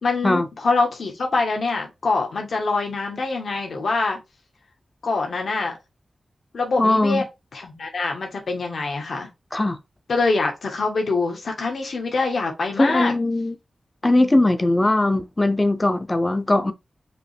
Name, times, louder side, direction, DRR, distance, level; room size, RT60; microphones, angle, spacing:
voice 1, 0.0-4.2 5.0-5.7 6.5-7.2 7.5-9.3 10.1-13.1, left 3 dB, 70° left, 1.3 m, -24 dB
voice 2, 6.8-7.3 9.5-9.8 12.8-13.5 14.0-16.7, left 2 dB, 20° left, 0.5 m, -20 dB
5.0 x 2.9 x 3.3 m
wide cardioid pair, 150°, 0 cm